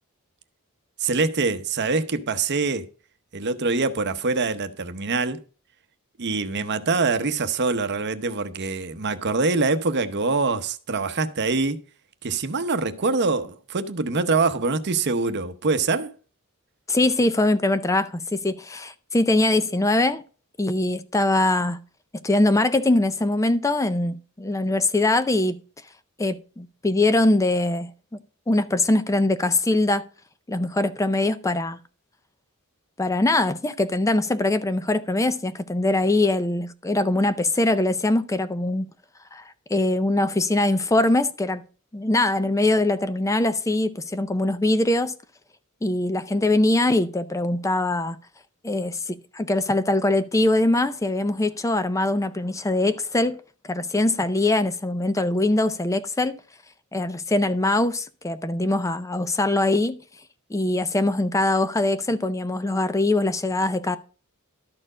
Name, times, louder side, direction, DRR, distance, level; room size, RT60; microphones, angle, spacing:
voice 1, 1.0-2.9 3.3-5.4 6.2-11.8 12.2-16.1, right 3 dB, 50° right, 0.8 m, -24 dB
voice 2, 16.9-20.2 20.6-21.8 22.2-25.6 26.2-27.9 28.5-30.0 30.5-31.8 33.0-38.9 39.3-39.4 39.7-41.6 41.9-45.1 45.8-48.2 48.6-53.4 53.6-56.4 56.9-60.0 60.5-64.0, left 2 dB, 15° left, 0.4 m, -22 dB
12.0 x 4.5 x 4.8 m
head